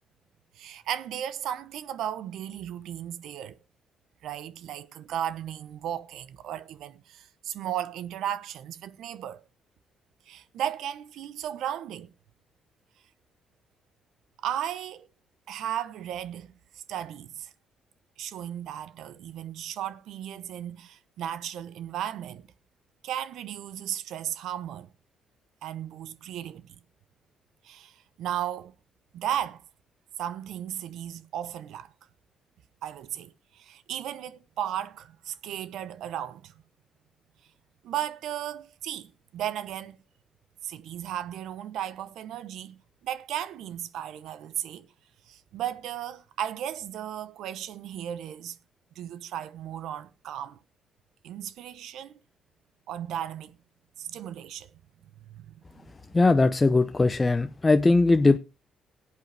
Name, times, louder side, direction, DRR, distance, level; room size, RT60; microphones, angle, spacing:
voice 1, 0.6-3.6 4.2-9.4 10.3-12.1 14.4-15.1 15.5-17.5 18.2-22.5 23.0-24.9 25.6-26.8 27.6-28.7 29.1-29.6 30.2-31.9 32.8-36.5 37.8-40.0 40.6-44.9 45.3-48.6 49.0-50.6 51.2-52.1 52.9-53.6 54.0-54.7 55.3-55.8, right 10 dB, 80° right, 0.8 m, -35 dB
voice 2, 56.1-58.4, left 3 dB, 25° left, 0.7 m, -20 dB
18.5 x 8.5 x 3.4 m
cardioid pair, 90°, 0 cm